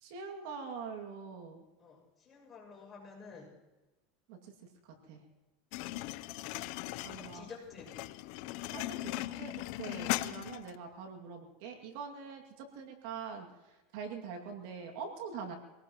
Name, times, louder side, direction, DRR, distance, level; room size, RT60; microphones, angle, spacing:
voice 1, 0.0-1.6 4.3-4.5 4.8-5.2 7.0-7.5 8.7-13.5 13.9-15.5, right 5 dB, 65° right, 3 dB, 2.4 m, -44 dB
voice 2, 1.8-3.5 6.8-8.0, left 4 dB, 20° left, -2 dB, 6.9 m, -51 dB
sound 1, 5.7-10.8, left 17 dB, 60° left, 0.5 m, -38 dB
24.0 x 18.5 x 3.0 m, 1.1 s
supercardioid pair, 130°, 0 cm